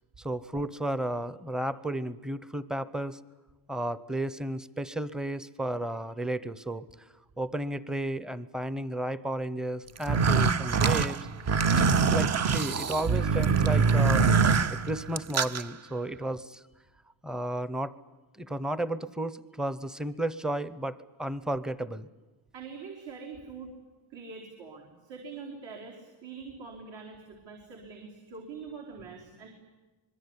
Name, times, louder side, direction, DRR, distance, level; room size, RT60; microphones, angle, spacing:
voice 1, 0.2-3.2 3.7-6.9 7.4-11.2 11.8-16.6 17.2-17.9 18.3-22.1, right 1 dB, ahead, 16 dB, 0.8 m, -33 dB
sound 1, 10.0-15.6, right 5 dB, 30° right, 0.8 m, -24 dB
voice 2, 22.5-23.7 24.1-29.5, right 5 dB, 60° right, 0 dB, 4.5 m, -44 dB
25.5 x 22.5 x 9.7 m, 1.2 s
cardioid pair, 135°, 49 cm